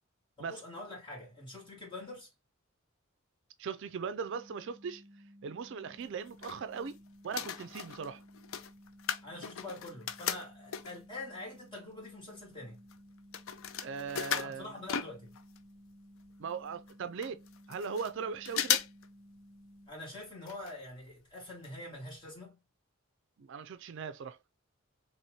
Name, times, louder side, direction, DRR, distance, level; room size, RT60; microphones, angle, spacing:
voice 1, 0.4-2.3 9.2-12.8 14.4-15.3 19.9-22.6, left 2 dB, 25° left, 2.1 m, -45 dB
voice 2, 3.6-5.0 5.4-7.0 7.2-8.2 13.8-14.7 16.4-17.4 17.7-18.8 23.4-24.4, right 5 dB, 60° right, 0.4 m, -39 dB
sound 1, 4.2-19.9, equal, 40° right, 0.8 m, -56 dB
sound 2, 6.0-7.0 7.2-11.1 11.7-11.8 12.0-15.6 15.9-16.0 16.2-16.3 16.9-17.0 17.2-18.1 18.5-19.1 19.4-19.5 20.4-20.7 21.1-21.2 21.6-21.7 22.1-22.2, left 9 dB, 70° left, 0.4 m, -36 dB
4.2 x 3.0 x 3.0 m
head